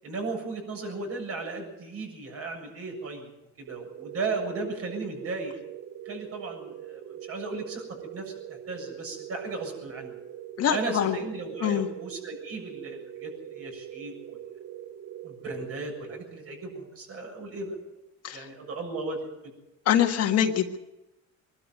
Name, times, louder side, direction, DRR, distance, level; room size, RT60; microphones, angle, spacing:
voice 1, 0.0-3.3 3.6-5.5 6.1-10.2 10.7-14.4 15.2-17.8 18.3-19.2, right 3 dB, 50° right, 2 dB, 7.3 m, -36 dB
sound 1, 3.7-16.8, right 11 dB, 70° right, 5.2 m, -43 dB
voice 2, 10.6-11.2 11.6-11.9 18.2-18.5 19.8-20.8, left 9 dB, 55° left, 5 dB, 1.6 m, -24 dB
22.5 x 12.5 x 9.3 m, 0.96 s
cardioid pair, 140°, 30 cm